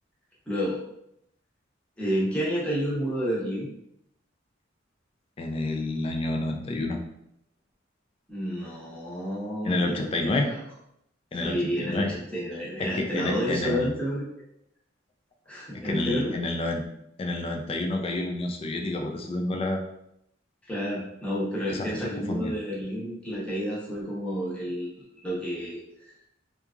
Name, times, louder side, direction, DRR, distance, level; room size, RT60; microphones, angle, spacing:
voice 1, 0.5-0.8 2.0-3.7 8.3-10.6 11.4-14.2 15.5-16.3 20.7-25.8, equal, 5° left, -7 dB, 0.8 m, -30 dB
voice 2, 5.4-7.0 9.6-10.5 11.3-12.1 12.9-13.9 15.7-16.8 17.2-19.8 21.7-22.5, left 2 dB, 30° left, 2 dB, 0.3 m, -29 dB
2.8 x 2.3 x 2.4 m, 0.78 s
head